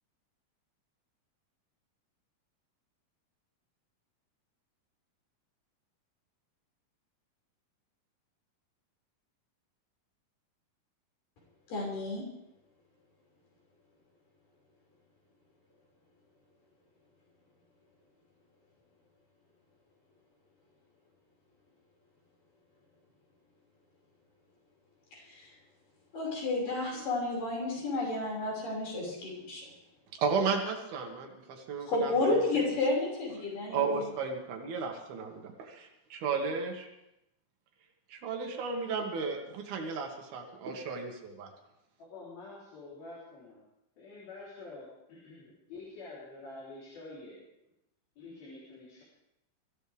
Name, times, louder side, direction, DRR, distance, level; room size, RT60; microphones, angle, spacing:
voice 1, 11.7-12.3 25.1-25.5 26.1-29.7 31.9-34.1, left 2 dB, 65° left, -3 dB, 7.4 m, -31 dB
voice 2, 30.2-32.4 33.7-36.9 38.1-41.5, right 5 dB, 85° right, 2 dB, 3.9 m, -34 dB
voice 3, 42.0-43.6 44.0-47.4 48.2-49.0, left 3 dB, 80° left, -6 dB, 5.6 m, -47 dB
24.0 x 15.5 x 3.6 m, 0.85 s
omnidirectional pair, 4.2 m